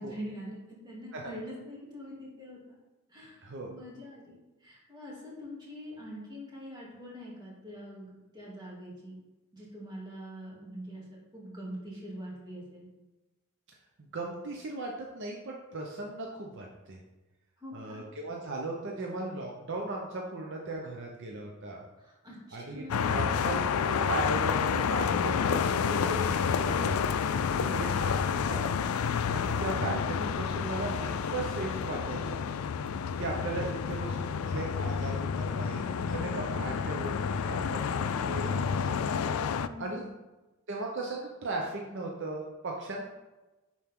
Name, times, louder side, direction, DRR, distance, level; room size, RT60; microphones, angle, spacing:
voice 1, 0.0-2.8 3.1-9.2 9.5-12.9 17.6-18.0 22.0-23.4 27.6-28.0 39.6-40.1, equal, 20° right, -6 dB, 2.8 m, -44 dB
voice 2, 3.4-3.7 14.0-17.0 17.7-21.8 22.5-28.1 28.5-28.7 29.3-32.6 33.2-39.0 39.8-40.0 40.7-43.1, right 2 dB, 60° right, -1 dB, 0.9 m, -37 dB
sound 1, 22.9-39.7, left 6 dB, 80° left, 0.4 m, -29 dB
10.5 x 4.6 x 3.7 m, 1.1 s
head